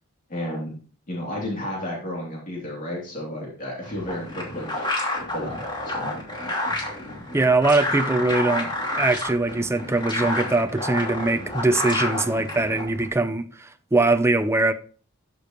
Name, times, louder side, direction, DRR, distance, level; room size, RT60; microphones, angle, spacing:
voice 1, 0.3-0.7 1.1-4.9 5.3-6.1, left 1 dB, 40° left, 3.0 m, -32 dB
sound 1, 3.8-13.1, left 1 dB, 20° left, 2.9 m, -29 dB
voice 2, 7.3-8.7 9.0-14.7, right 2 dB, 10° right, 0.5 m, -22 dB
13.0 x 6.8 x 3.1 m
head